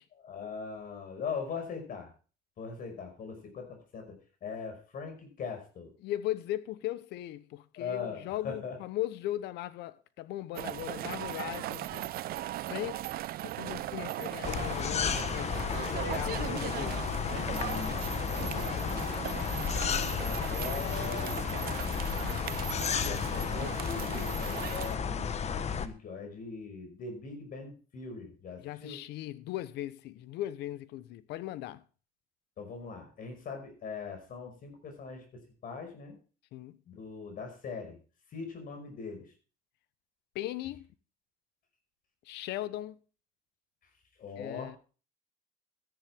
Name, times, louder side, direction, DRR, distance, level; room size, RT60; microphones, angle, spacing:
voice 1, 0.2-2.1 2.6-5.9 7.8-8.8 17.4-19.1 20.2-21.8 23.0-29.0 32.6-36.1 36.9-38.0 38.3-39.3 44.2-44.7, left 5 dB, 55° left, 5.5 m, -41 dB
voice 2, 6.0-12.1 12.7-13.2 13.4-17.0 28.6-31.8 36.5-36.8 40.3-40.9 42.3-43.0 44.4-44.8, left 14 dB, 85° left, 0.9 m, -38 dB
sound 1, 10.5-25.0, right 15 dB, 65° right, 0.5 m, -38 dB
sound 2, 14.4-25.9, left 7 dB, 40° left, 1.1 m, -33 dB
13.5 x 10.5 x 3.5 m
cardioid pair, 110°, 17 cm